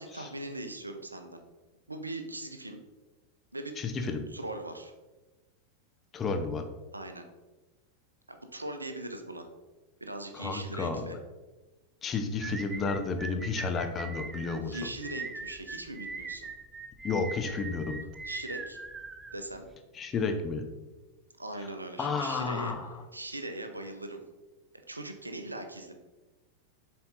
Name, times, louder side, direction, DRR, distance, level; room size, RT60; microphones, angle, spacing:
voice 1, 0.0-1.4 1.9-2.8 3.5-3.8 4.3-4.9 6.9-7.2 8.3-9.5 10.0-11.2 14.6-16.5 18.2-18.8 19.3-19.7 21.4-22.7 23.1-24.2 24.9-25.9, right 1 dB, 80° right, 6 dB, 0.7 m, -40 dB
voice 2, 3.8-4.2 6.1-6.6 10.3-11.1 12.0-14.8 17.0-18.0 19.9-20.7 22.0-22.9, left 4 dB, 25° left, 6 dB, 0.8 m, -31 dB
sound 1, 12.4-19.8, right 4 dB, 15° right, 0.5 m, -41 dB
7.0 x 4.4 x 4.0 m, 1.2 s
figure-of-eight pair, 90°, 0 cm